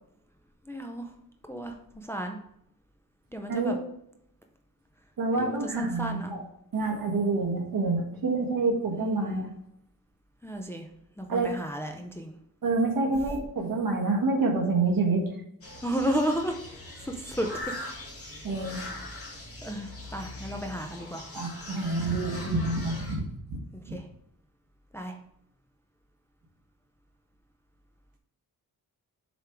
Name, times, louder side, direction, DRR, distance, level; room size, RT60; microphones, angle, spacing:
voice 1, 0.7-1.1 1.5-2.4 3.3-3.8 5.3-6.3 9.0-9.5 10.4-10.9 11.2-12.3 15.8-16.6 17.0-17.5 18.7-19.3 19.6-21.3 22.4-22.6 23.9-24.1 24.9-25.2, equal, 5° left, 3 dB, 0.5 m, -33 dB
voice 2, 3.5-3.8 5.2-6.4 6.7-9.5 11.3-11.5 12.6-15.2 18.4-18.8 21.3-23.2 23.5-23.6 23.9-24.0, right 3 dB, 65° right, 2 dB, 1.4 m, -27 dB
sound 1, 15.6-23.2, left 2 dB, 40° left, 1.8 m, -41 dB
6.9 x 3.6 x 4.5 m, 0.74 s
wide cardioid pair, 155°, 36 cm